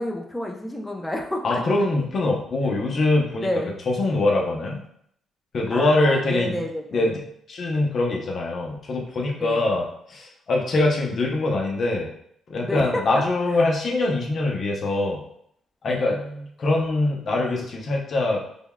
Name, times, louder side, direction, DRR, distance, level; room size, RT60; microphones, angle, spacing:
voice 1, 0.0-1.8 3.4-3.7 5.7-7.1 9.4-9.8 12.6-13.0 13.6-13.7 15.9-16.5, left 1 dB, 5° left, 1 dB, 0.6 m, -30 dB
voice 2, 1.4-3.5 3.9-4.8 5.5-6.6 6.9-7.1 7.5-9.8 10.1-12.1 12.5-15.2 15.8-16.2 16.6-18.4, left 2 dB, 50° left, -1 dB, 0.7 m, -23 dB
5.1 x 2.3 x 2.2 m, 0.70 s
cardioid pair, 90°, 0 cm